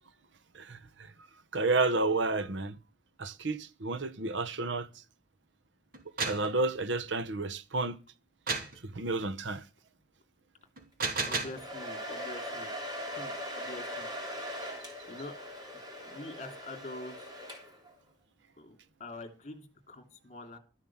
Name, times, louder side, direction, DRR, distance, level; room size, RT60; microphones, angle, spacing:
voice 1, 0.5-1.1 1.5-2.8 3.2-4.9 6.2-8.0 8.8-9.6 13.6-13.7, right 3 dB, 85° right, 1.0 m, -31 dB
sound 1, 5.9-6.5 8.5-8.8 10.8-11.6, right 4 dB, 55° right, 2.6 m, -32 dB
voice 2, 11.2-12.7 13.1-14.1 15.1-15.4 16.0-17.3 18.6-20.6, left 2 dB, 40° left, 2.9 m, -45 dB
Domestic sounds home sounds, 11.2-17.9, equal, 25° right, 3.4 m, -40 dB
13.0 x 7.3 x 7.4 m
head